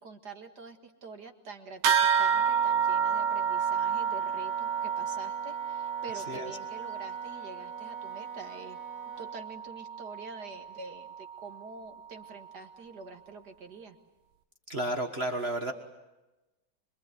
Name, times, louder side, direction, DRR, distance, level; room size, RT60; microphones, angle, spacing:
voice 1, 0.0-8.8 9.2-14.0, right 4 dB, 50° right, 5 dB, 2.3 m, -46 dB
sound 1, 1.8-11.6, right 7 dB, 85° right, 2.2 m, -30 dB
Wind instrument woodwind instrument, 2.2-9.4, right 3 dB, 10° left, 7.8 m, -49 dB
voice 2, 6.1-6.5 14.7-15.7, right 1 dB, 35° right, 4 dB, 1.6 m, -32 dB
26.5 x 23.5 x 8.2 m, 1.0 s
omnidirectional pair, 2.3 m